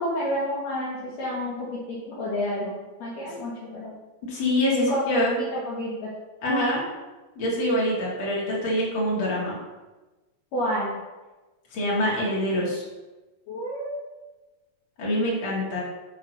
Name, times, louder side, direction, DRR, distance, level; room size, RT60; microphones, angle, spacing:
voice 1, 0.0-3.9 4.8-5.0 5.5-6.1 10.5-11.0 13.5-14.0, equal, 60° left, -8 dB, 2.5 m, -30 dB
voice 2, 4.3-5.4 6.4-6.8 7.4-9.6 11.7-12.9 15.0-15.8, left 1 dB, 40° left, -5 dB, 2.7 m, -25 dB
8.0 x 3.7 x 6.1 m, 1.2 s
omnidirectional pair, 3.8 m